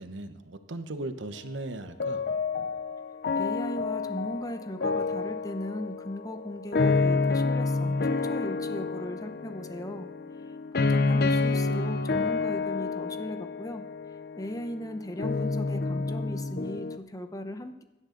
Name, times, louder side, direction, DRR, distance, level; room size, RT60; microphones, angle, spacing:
voice 1, 0.0-2.2, right 2 dB, 85° right, 9 dB, 1.0 m, -37 dB
sound 1, 2.0-17.0, left 3 dB, 60° left, 0.7 m, -29 dB
voice 2, 3.3-10.1 10.9-13.8 14.3-17.8, left 1 dB, 20° left, 8 dB, 0.9 m, -37 dB
17.0 x 11.0 x 3.9 m, 1.1 s
head